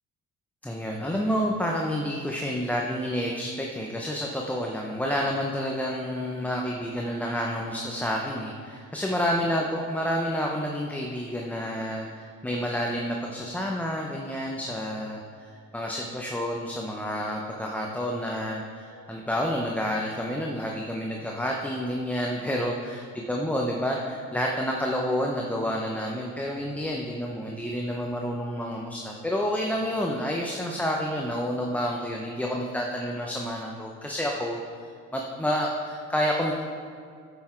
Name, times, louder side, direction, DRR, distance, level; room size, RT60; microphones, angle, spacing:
voice 1, 0.6-23.0 23.3-36.6, equal, 5° left, -1 dB, 0.7 m, -29 dB
9.3 x 6.0 x 4.4 m, 2.3 s
cardioid pair, 90°, 30 cm